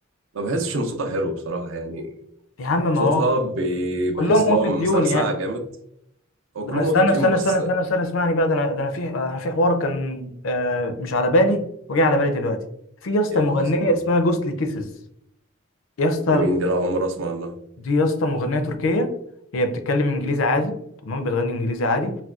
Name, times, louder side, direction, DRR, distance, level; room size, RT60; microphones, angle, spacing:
voice 1, 0.3-2.1 3.0-5.7 6.5-7.7 13.3-14.0 16.3-17.5, right 1 dB, 70° right, 0.5 m, -25 dB
voice 2, 2.6-3.2 4.2-5.3 6.7-12.6 13.0-14.9 16.0-16.5 17.9-19.1 19.5-20.8 21.0-22.2, left 1 dB, 75° left, 0.5 m, -21 dB
4.0 x 2.2 x 2.3 m
head